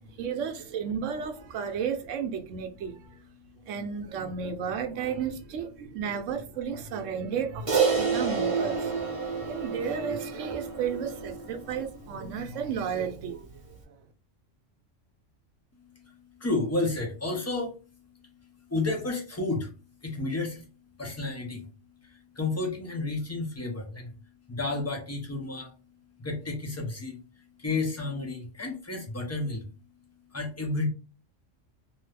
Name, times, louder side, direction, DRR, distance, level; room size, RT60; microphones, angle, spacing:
voice 1, 0.2-3.2 3.6-13.9, right 7 dB, 75° right, 0.9 m, -33 dB
voice 2, 3.4-3.7 9.2-9.5 15.7-17.8 18.7-19.7 20.0-20.6 21.0-21.7 22.0-24.1 24.5-25.7 26.2-27.2 27.6-29.6 30.3-30.9, left 3 dB, 25° left, 0.4 m, -31 dB
Crash cymbal, 7.7-12.2, right 5 dB, 30° right, 0.7 m, -29 dB
2.7 x 2.3 x 3.2 m
omnidirectional pair, 1.3 m